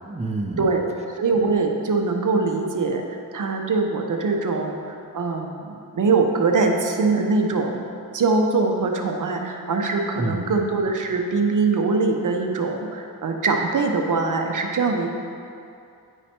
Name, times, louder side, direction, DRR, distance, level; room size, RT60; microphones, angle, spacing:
voice 1, 0.1-0.7 10.2-10.5, right 2 dB, 20° right, 2 dB, 0.7 m, -28 dB
voice 2, 1.2-4.8 5.1-7.8 8.1-15.1, right 3 dB, 55° right, 2 dB, 0.9 m, -22 dB
10.0 x 4.9 x 4.4 m, 2.5 s
cardioid pair, 85°, 37 cm